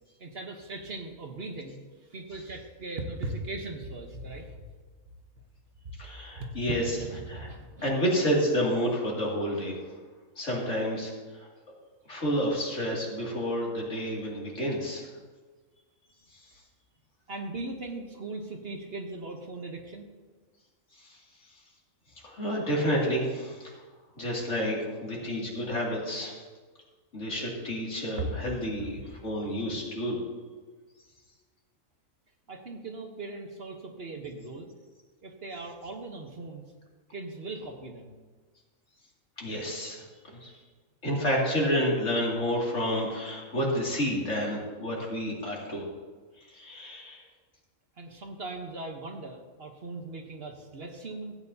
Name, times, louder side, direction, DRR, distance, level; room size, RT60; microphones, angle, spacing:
voice 1, 0.2-4.6 5.8-5.9 6.4-7.9 17.3-20.1 28.2-28.4 28.8-29.0 32.5-34.7 35.2-36.7 37.1-38.2 48.0-51.4, right 2 dB, 50° right, 3 dB, 1.2 m, -39 dB
voice 2, 6.0-6.8 7.3-7.5 7.8-9.8 10.4-11.1 11.4-11.5 12.1-15.1 21.1-21.2 22.2-23.7 24.2-26.4 27.1-30.2 39.4-40.1 40.4-40.5 41.0-45.9 46.5-47.2, equal, 65° left, -4 dB, 2.9 m, -29 dB
16.0 x 9.0 x 2.8 m, 1.4 s
omnidirectional pair, 1.4 m